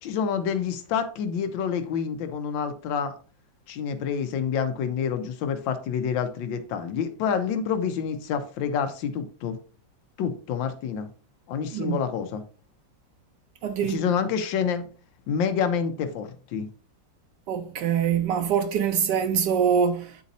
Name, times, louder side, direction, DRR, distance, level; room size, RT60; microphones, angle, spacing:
voice 1, 0.0-3.1 3.7-9.6 10.2-11.1 11.5-12.4 13.9-14.9 15.3-16.7, left 7 dB, 85° left, 1.4 m, -28 dB
voice 2, 13.6-14.0 17.5-20.2, right 7 dB, 70° right, 1.2 m, -24 dB
9.3 x 4.1 x 2.6 m
omnidirectional pair, 2.0 m